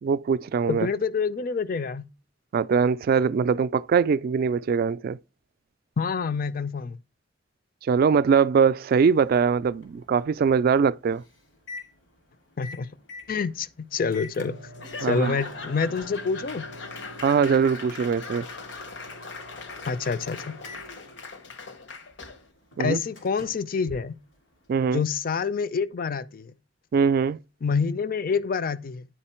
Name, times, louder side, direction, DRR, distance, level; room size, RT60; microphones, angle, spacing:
voice 1, 0.0-0.9 2.5-5.2 7.8-11.2 15.0-15.3 17.2-18.5 22.8-23.0 24.7-25.0 26.9-27.4, right 6 dB, 55° right, 0.3 m, -22 dB
voice 2, 0.7-2.0 6.0-7.0 12.6-12.9 13.3-14.6 15.0-16.7 19.9-20.6 22.8-24.2 24.9-26.5 27.6-29.0, left 5 dB, 50° left, 0.5 m, -27 dB
Microwave oven, 9.0-24.7, left 1 dB, 85° left, 2.8 m, -46 dB
Laughter / Applause / Crowd, 14.7-22.5, left 4 dB, 70° left, 1.0 m, -40 dB
10.0 x 4.3 x 4.3 m
head